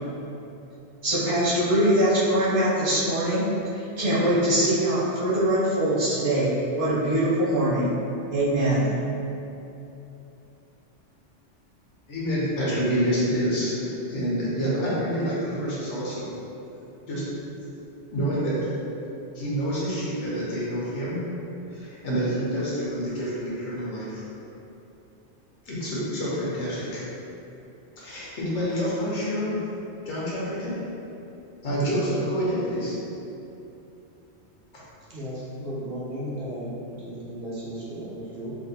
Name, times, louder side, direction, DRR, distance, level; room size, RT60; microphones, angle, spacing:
voice 1, 1.0-7.9 8.3-8.9, right 1 dB, 40° right, -11 dB, 0.5 m, -23 dB
voice 2, 12.1-16.3 17.1-17.2 18.1-18.6 19.3-21.2 21.7-24.2 25.6-27.0 28.0-29.6 30.0-30.8 31.6-32.9, equal, 75° left, -8 dB, 1.3 m, -27 dB
voice 3, 35.1-38.6, equal, 60° right, -8 dB, 1.0 m, -35 dB
4.0 x 2.6 x 2.8 m, 2.8 s
omnidirectional pair, 1.2 m